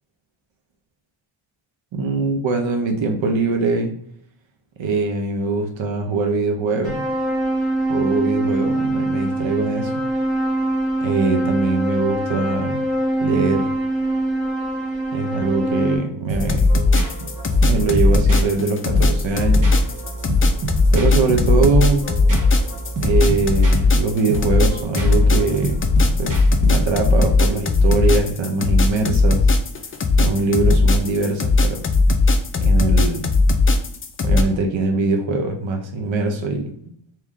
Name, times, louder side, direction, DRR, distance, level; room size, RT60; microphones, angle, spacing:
voice 1, 1.9-3.9 4.8-7.0 7.9-9.9 11.0-12.8 13.2-13.7 15.1-16.7 17.7-19.7 20.9-22.1 23.0-25.9 26.2-29.4 30.2-31.8 32.6-33.3 34.2-36.7, right 3 dB, 80° right, 4 dB, 0.8 m, -22 dB
sound 1, 6.8-16.0, right 1 dB, ahead, 1.2 m, -23 dB
sound 2, 16.3-27.2, equal, 45° right, 0.9 m, -28 dB
sound 3, 16.4-34.4, left 3 dB, 30° left, 0.4 m, -17 dB
3.6 x 3.0 x 3.6 m, 0.68 s
wide cardioid pair, 165°, 46 cm